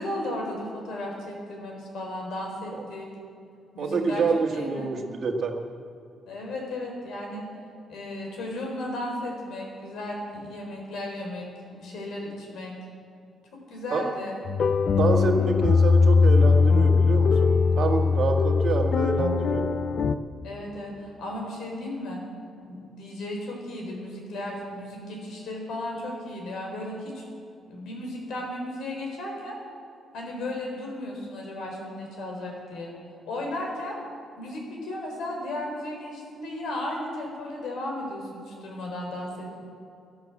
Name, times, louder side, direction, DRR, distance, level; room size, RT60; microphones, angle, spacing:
voice 1, 0.0-3.1 3.7-4.9 6.3-7.5 7.9-12.8 13.5-14.4 20.4-22.2 22.6-27.2 27.7-29.6 30.1-32.9 33.2-34.0 34.4-39.6, left 1 dB, 75° left, 0 dB, 4.3 m, -35 dB
voice 2, 3.8-5.5 13.9-14.0 15.0-19.7, right 4 dB, 50° right, 3 dB, 1.6 m, -27 dB
sound 1, 14.5-20.1, left 5 dB, 50° left, 0.5 m, -20 dB
13.0 x 12.0 x 7.6 m, 2.6 s
cardioid pair, 125°, 0 cm